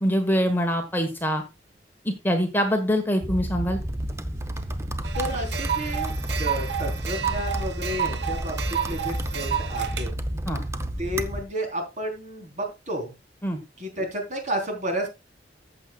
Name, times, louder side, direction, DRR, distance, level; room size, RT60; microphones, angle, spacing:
voice 1, 0.0-1.4 2.0-3.8 10.5-10.6 13.4-13.6, equal, 10° left, 5 dB, 1.3 m, -24 dB
sound 1, 3.2-11.5, right 1 dB, 15° right, 0.7 m, -31 dB
sound 2, 5.0-10.1, right 8 dB, 65° right, 1.1 m, -30 dB
voice 2, 5.1-6.1 6.4-10.1 11.0-13.1 13.8-15.1, equal, 40° right, 3 dB, 3.8 m, -31 dB
14.5 x 7.5 x 2.3 m, 0.25 s
head